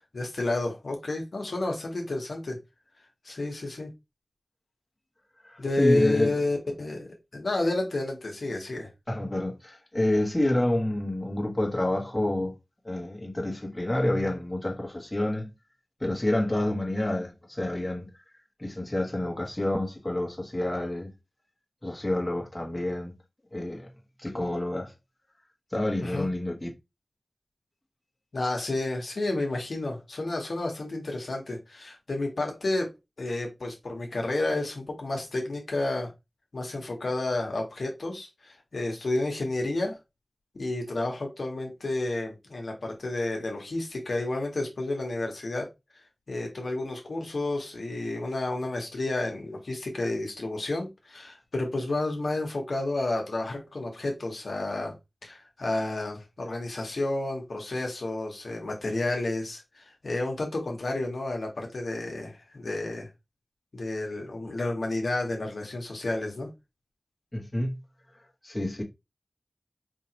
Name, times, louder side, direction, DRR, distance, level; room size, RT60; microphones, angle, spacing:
voice 1, 0.1-2.6 3.2-3.9 5.6-8.9 26.0-26.3 28.3-32.9 33.2-36.1 36.5-40.0 40.5-45.7 46.3-54.9 55.2-63.1 63.7-66.5, left 2 dB, 80° left, 1.2 m, -30 dB
voice 2, 5.4-6.3 9.1-12.5 12.8-15.5 16.0-18.1 18.6-21.1 21.8-23.1 23.5-23.9 24.2-24.9 25.7-26.7 67.3-67.8 68.4-68.8, left 1 dB, 25° left, 1.5 m, -28 dB
4.8 x 2.8 x 2.9 m
wide cardioid pair, 45°, 0 cm